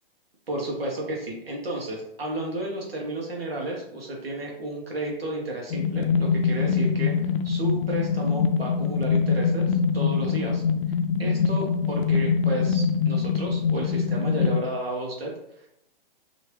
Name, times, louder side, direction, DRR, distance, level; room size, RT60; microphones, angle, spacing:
voice 1, 0.5-10.6 11.2-15.7, right 1 dB, 90° right, -1 dB, 1.0 m, -32 dB
sound 1, 5.7-14.6, left 6 dB, 70° left, 0.5 m, -24 dB
2.9 x 2.7 x 3.1 m, 0.80 s
hypercardioid pair, 130°, 29 cm